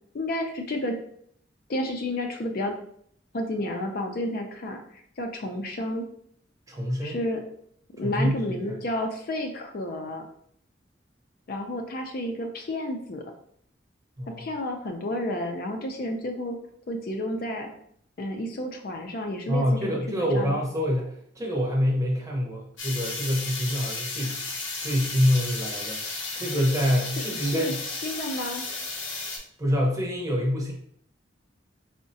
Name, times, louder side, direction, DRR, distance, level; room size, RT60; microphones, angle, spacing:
voice 1, 0.1-1.0 1.7-2.7 3.3-4.8 5.2-6.0 7.0-7.5 8.0-10.3 11.5-13.2 14.4-16.6 16.9-17.7 18.2-20.6 27.4-28.6, left 1 dB, 50° left, 4 dB, 0.4 m, -31 dB
voice 2, 6.7-7.2 8.0-8.8 14.2-14.4 19.5-24.5 24.8-26.0 26.4-27.8 29.6-30.7, equal, 20° right, -2 dB, 0.7 m, -26 dB
sound 1, 22.8-29.4, left 3 dB, 85° left, 0.8 m, -34 dB
4.6 x 2.1 x 2.6 m, 0.65 s
head